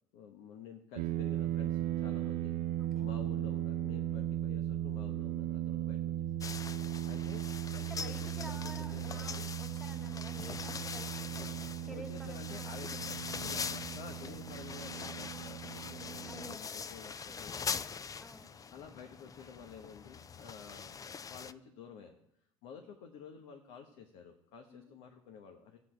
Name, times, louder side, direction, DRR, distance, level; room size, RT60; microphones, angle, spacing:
voice 1, 0.1-2.5 3.0-6.5 7.0-9.5 11.3-18.0 18.7-22.2 22.6-25.8, left 6 dB, 70° left, 3 dB, 1.2 m, -51 dB
sound 1, 1.0-16.6, right 12 dB, 70° right, 0.4 m, -37 dB
sound 2, 6.4-21.5, left 6 dB, 25° left, 0.5 m, -43 dB
voice 2, 6.9-7.2 7.8-12.8 16.3-17.0 17.3-17.4 18.2-18.7 24.7-24.9, equal, 5° left, 3 dB, 2.0 m, -51 dB
13.0 x 8.3 x 4.6 m, 0.78 s
supercardioid pair, 80°, 13 cm